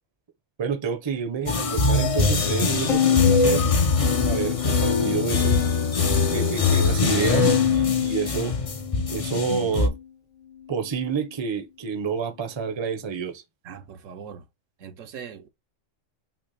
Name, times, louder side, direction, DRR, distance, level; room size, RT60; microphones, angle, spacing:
voice 1, 0.6-3.6 4.2-5.6 6.3-8.5 9.1-9.9 10.7-13.4, right 6 dB, 30° right, 0.6 m, -29 dB
sound 1, 1.5-9.9, left 4 dB, 40° left, 0.5 m, -22 dB
Bowed string instrument, 2.9-5.3 5.7-6.5 7.5-10.0, left 9 dB, 85° left, 1.8 m, -27 dB
voice 2, 13.6-14.4 14.8-15.5, right 7 dB, 75° right, 1.1 m, -40 dB
5.8 x 2.1 x 4.0 m
omnidirectional pair, 1.3 m